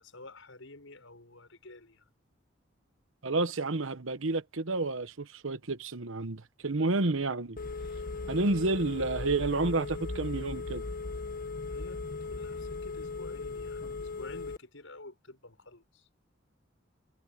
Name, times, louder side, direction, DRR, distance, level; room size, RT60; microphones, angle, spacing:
voice 1, 0.0-2.0 11.7-16.1, left 2 dB, 80° left, 6.2 m, -49 dB
voice 2, 3.2-7.6 8.3-10.8, right 2 dB, 80° right, 1.1 m, -30 dB
Telephone, 7.6-14.6, left 3 dB, 45° left, 1.5 m, -38 dB
head